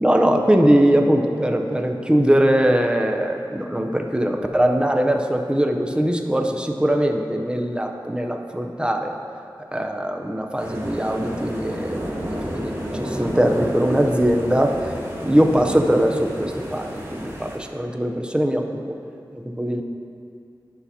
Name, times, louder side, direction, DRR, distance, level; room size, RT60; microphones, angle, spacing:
voice 1, 0.0-9.2 9.7-14.9 15.2-18.9 19.3-19.8, right 1 dB, 10° right, 3 dB, 0.6 m, -21 dB
sound 1, 10.6-17.6, equal, 30° right, 1.4 m, -31 dB
11.5 x 5.6 x 2.8 m, 2.5 s
wide cardioid pair, 55°, 8 cm